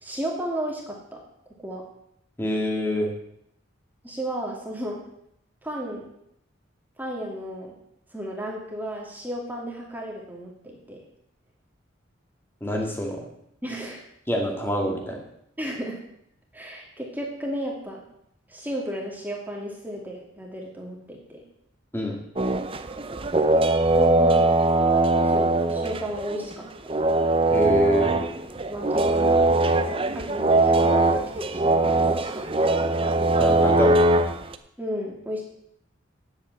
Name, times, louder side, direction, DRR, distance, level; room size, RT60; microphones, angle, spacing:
voice 1, 0.0-1.2 1.6-1.8 4.0-5.0 5.6-6.1 7.0-7.7 8.1-11.0 13.6-14.0 15.6-16.0 16.5-18.0 18.5-21.4 23.9-24.4 25.2-26.6 28.7-29.7 30.1-32.5 34.8-35.4, equal, 10° right, -1 dB, 2.4 m, -33 dB
voice 2, 2.4-3.1 12.6-13.3 14.3-15.2 21.9-22.2 27.5-28.1 33.4-34.1, equal, 10° left, 1 dB, 2.2 m, -25 dB
sound 1, 22.4-26.5 26.9-34.5, right 2 dB, 25° right, 0.6 m, -21 dB
10.5 x 8.2 x 7.9 m, 0.76 s
head